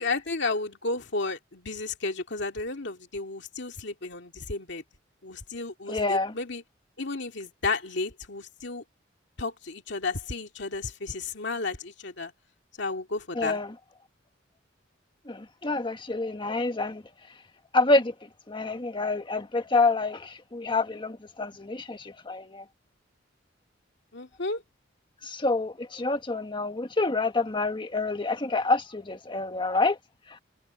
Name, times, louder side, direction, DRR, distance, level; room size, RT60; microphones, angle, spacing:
voice 1, 0.0-4.8 5.2-6.6 7.0-8.8 9.4-12.3 12.8-13.6 24.1-24.6, left 3 dB, 65° left, 2.4 m, -32 dB
voice 2, 5.9-6.3 13.4-13.7 15.3-17.0 17.7-18.1 18.5-22.6 25.2-30.0, left 3 dB, 25° left, 1.6 m, -27 dB
head